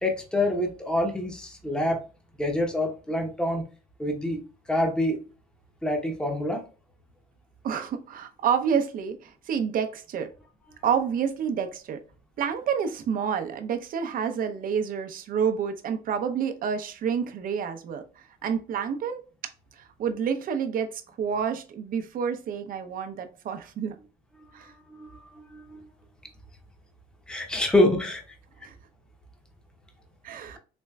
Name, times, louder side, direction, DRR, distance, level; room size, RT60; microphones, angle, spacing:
voice 1, 0.0-2.0 2.4-3.6 4.0-4.4 4.7-5.2 5.8-6.7 24.6-25.9 27.3-28.4, left 1 dB, 5° left, 0.8 m, -26 dB
voice 2, 7.6-10.3 10.8-12.0 12.4-18.0 18.4-19.2 19.8-24.0 24.5-24.7 28.6-28.7 30.2-30.6, right 7 dB, 55° right, 0.7 m, -29 dB
4.3 x 3.0 x 2.3 m
cardioid pair, 110°, 17 cm